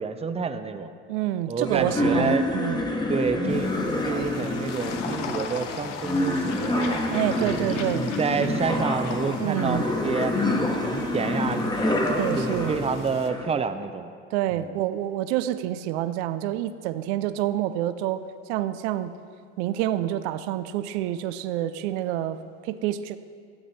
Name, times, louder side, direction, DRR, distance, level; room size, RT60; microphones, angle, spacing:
voice 1, 0.0-0.9 1.5-2.5 3.1-3.7 4.0-7.0 7.4-10.3 10.8-12.0 12.4-14.1 14.5-14.7, right 5 dB, 15° right, 9 dB, 0.6 m, -29 dB
voice 2, 1.1-2.8 7.1-8.1 8.3-8.6 9.4-9.8 12.1-12.7 14.3-19.1 19.6-22.4 22.6-23.2, right 13 dB, 70° right, 12 dB, 0.6 m, -28 dB
sound 1, 1.6-13.5, left 1 dB, 10° left, 1.3 m, -27 dB
sound 2, 3.5-13.3, left 6 dB, 90° left, 0.8 m, -40 dB
13.5 x 8.4 x 4.2 m, 2.2 s
hypercardioid pair, 75°, 35 cm